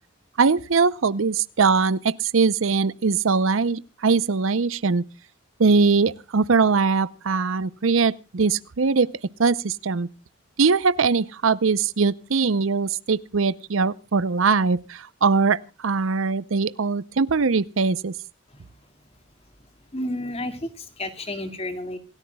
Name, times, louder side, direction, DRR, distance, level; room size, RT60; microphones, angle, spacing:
voice 1, 0.4-5.0 5.6-9.1 9.4-10.1 10.6-18.1, right 4 dB, 85° right, 0.7 m, -21 dB
voice 2, 19.9-22.0, left 1 dB, 30° left, 2.3 m, -31 dB
27.0 x 13.5 x 2.3 m
head